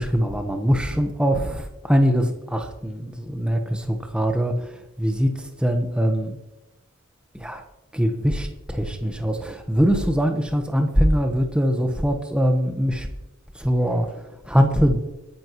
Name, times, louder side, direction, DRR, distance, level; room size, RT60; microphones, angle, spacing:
voice 1, 0.0-6.4 7.3-7.6 7.9-13.1 13.5-15.1, equal, 5° right, 5 dB, 1.2 m, -22 dB
21.0 x 10.5 x 3.1 m, 0.99 s
head